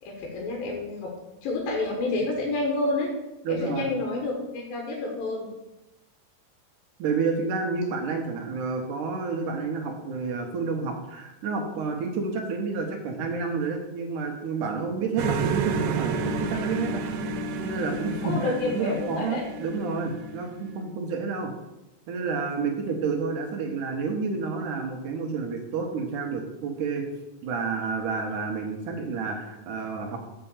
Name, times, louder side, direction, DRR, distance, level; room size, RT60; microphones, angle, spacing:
voice 1, 0.0-1.1 1.4-3.1 3.5-5.5 18.2-19.4, left 2 dB, 80° left, -1 dB, 3.1 m, -29 dB
voice 2, 3.5-3.9 7.0-17.0 17.6-21.5 22.1-27.0 27.4-30.2, right 4 dB, 70° right, 3 dB, 2.3 m, -30 dB
sound 1, 15.2-20.8, right 4 dB, 90° right, 2.7 m, -31 dB
6.8 x 5.6 x 7.1 m, 0.98 s
omnidirectional pair, 4.1 m